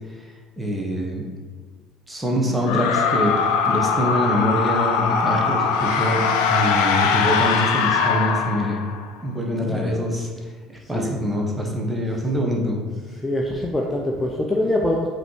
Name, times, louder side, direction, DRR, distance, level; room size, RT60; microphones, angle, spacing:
voice 1, 0.6-1.2 2.1-3.3 3.6-6.2 6.5-8.8 9.2-10.3 10.7-12.8, equal, 10° right, -1 dB, 1.3 m, -24 dB
sound 1, 2.6-9.1, left 5 dB, 60° left, 0.5 m, -21 dB
voice 2, 10.8-11.1 13.2-15.1, left 1 dB, 15° left, -1 dB, 0.7 m, -24 dB
7.7 x 3.1 x 4.8 m, 1.5 s
figure-of-eight pair, 60°, 0 cm